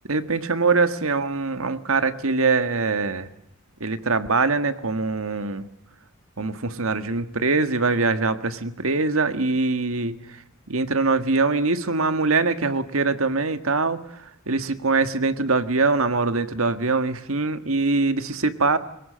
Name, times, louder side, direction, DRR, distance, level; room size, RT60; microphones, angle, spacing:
voice 1, 0.1-3.3 3.8-5.6 6.4-10.1 10.7-14.0 14.5-18.8, right 3 dB, 80° right, 10 dB, 1.7 m, -23 dB
23.5 x 20.0 x 7.6 m, 0.80 s
head